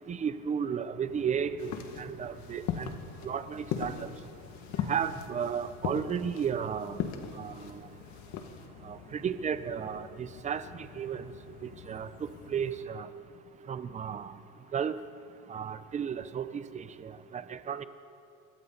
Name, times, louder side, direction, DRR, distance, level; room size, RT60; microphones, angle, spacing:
voice 1, 0.1-2.9 3.2-4.1 4.9-7.0 7.3-7.8 8.8-11.3 11.6-12.1 12.5-13.1 13.7-14.3 14.7-15.0 15.5-17.8, right 7 dB, 20° right, 12 dB, 0.7 m, -34 dB
sound 1, 1.0-12.9, left 6 dB, 85° left, 2.2 m, -52 dB
sound 2, 1.6-8.7, left 8 dB, 55° left, 1.9 m, -38 dB
28.0 x 22.5 x 4.1 m, 2.6 s
cardioid pair, 150°, 35 cm